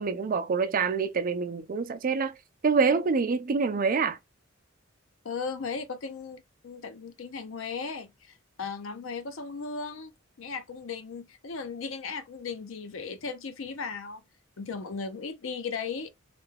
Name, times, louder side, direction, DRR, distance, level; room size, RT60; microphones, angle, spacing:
voice 1, 0.0-2.3 2.6-4.2, right 5 dB, 45° right, 0.4 m, -26 dB
voice 2, 5.2-10.1 10.4-14.2 14.6-16.1, left 5 dB, 70° left, 0.6 m, -36 dB
3.3 x 2.2 x 3.3 m
head